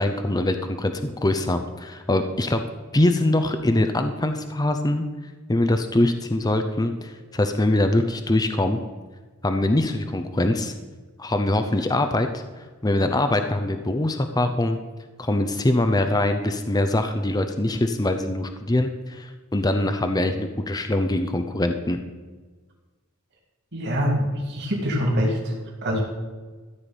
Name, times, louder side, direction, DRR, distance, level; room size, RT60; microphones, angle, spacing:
voice 1, 0.0-2.6 2.9-5.1 5.5-8.8 9.4-10.7 11.2-12.3 12.8-14.8 15.2-22.0, left 1 dB, 20° left, 7 dB, 0.7 m, -23 dB
voice 2, 23.7-25.6 25.8-26.0, equal, 50° right, -2 dB, 3.2 m, -24 dB
14.0 x 5.1 x 9.0 m, 1.4 s
head